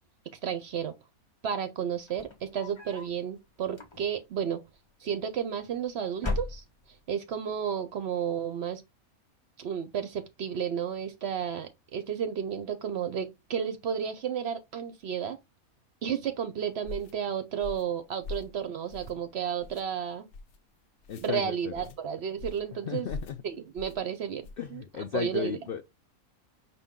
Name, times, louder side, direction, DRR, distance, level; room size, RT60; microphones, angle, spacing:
voice 1, 0.4-0.9 1.4-4.6 5.0-6.6 7.1-8.8 9.6-15.4 16.0-20.3 21.2-23.1 23.4-24.8 25.1-25.6, right 8 dB, 60° right, 0.7 m, -32 dB
sound 1, 2.0-3.2 3.7-4.4 5.3-5.8 6.1-7.1, left 2 dB, 25° left, 0.7 m, -37 dB
sound 2, 16.8-17.1 17.6-17.9 18.2-18.5 18.9-19.3 19.6-19.8 20.3-20.6 21.0-21.3 21.7-22.0 22.4-22.7 23.1-23.4 23.8-24.0 24.4-24.7, left 2 dB, 65° left, 0.8 m, -42 dB
voice 2, 21.1-21.9 22.9-23.4 24.6-25.8, left 8 dB, 80° left, 0.5 m, -34 dB
5.3 x 2.8 x 3.5 m
omnidirectional pair, 1.5 m